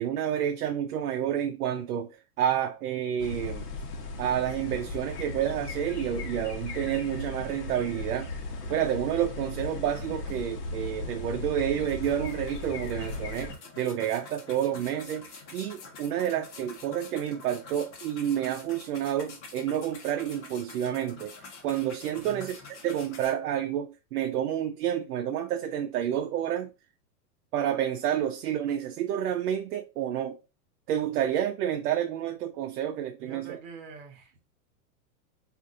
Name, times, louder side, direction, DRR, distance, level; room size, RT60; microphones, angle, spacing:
voice 1, 0.0-3.7 4.2-8.3 8.7-26.7 27.5-30.4 30.9-33.6, right 10 dB, 75° right, 0.5 m, -29 dB
sound 1, 3.2-13.6, left 3 dB, 85° left, 1.0 m, -37 dB
sound 2, 9.6-9.7 10.0-10.9 11.3-11.4 11.9-23.3, left 4 dB, 50° left, 0.9 m, -48 dB
voice 2, 22.2-22.5 33.2-34.4, right 6 dB, 55° right, 1.2 m, -45 dB
2.5 x 2.5 x 3.6 m
supercardioid pair, 175°, 46 cm